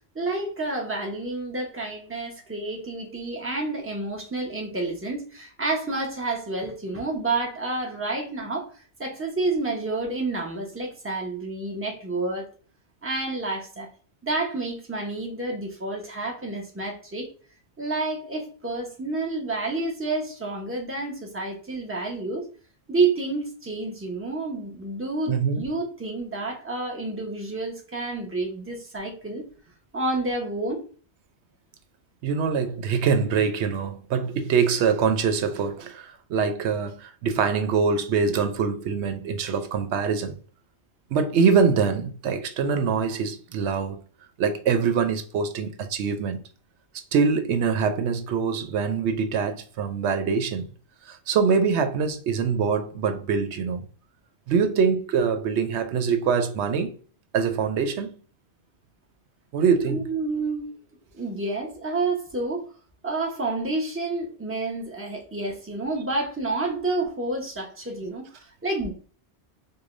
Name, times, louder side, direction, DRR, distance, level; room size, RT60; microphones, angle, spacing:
voice 1, 0.1-8.7 9.0-12.5 13.0-13.9 14.2-17.3 17.8-22.5 22.9-29.4 29.9-30.8 59.9-60.7 61.1-62.7 63.0-68.9, right 2 dB, 15° right, 0.8 m, -29 dB
voice 2, 25.3-25.6 32.2-40.4 41.1-44.0 44.4-46.4 46.9-50.7 51.1-53.8 54.5-57.0 57.3-58.1 59.5-60.0, right 6 dB, 90° right, 0.9 m, -24 dB
4.8 x 2.2 x 2.5 m
omnidirectional pair, 1.1 m